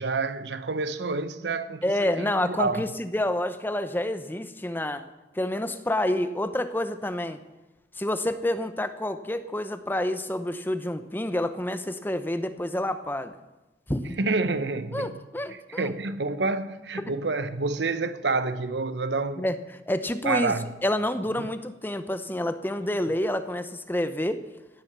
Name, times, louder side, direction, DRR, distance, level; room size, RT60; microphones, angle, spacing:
voice 1, 0.0-2.9 14.2-15.2 15.5-19.5 20.2-20.7 21.4-21.5, right 3 dB, 80° right, 0.9 m, -28 dB
voice 2, 1.8-5.1 5.3-7.4 8.0-13.3 13.9-14.2 14.9-15.9 19.4-19.5 19.9-20.5 20.8-24.4, left 1 dB, 10° left, 0.8 m, -28 dB
16.5 x 10.5 x 6.8 m
head